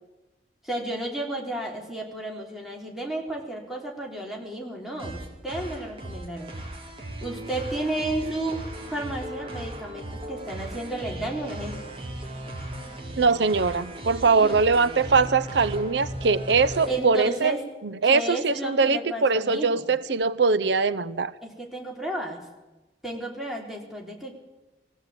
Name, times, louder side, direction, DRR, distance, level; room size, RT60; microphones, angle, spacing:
voice 1, 0.6-6.6 7.2-8.6 8.9-12.0 14.3-14.6 16.9-17.6 18.0-19.9 21.4-22.4 23.0-24.3, right 1 dB, ahead, -1 dB, 4.2 m, -32 dB
sound 1, 5.0-17.0, right 1 dB, 30° right, 4.0 m, -37 dB
voice 2, 13.2-17.5 17.8-21.3, right 4 dB, 85° right, 17 dB, 0.7 m, -22 dB
22.0 x 16.0 x 9.0 m, 1.1 s
head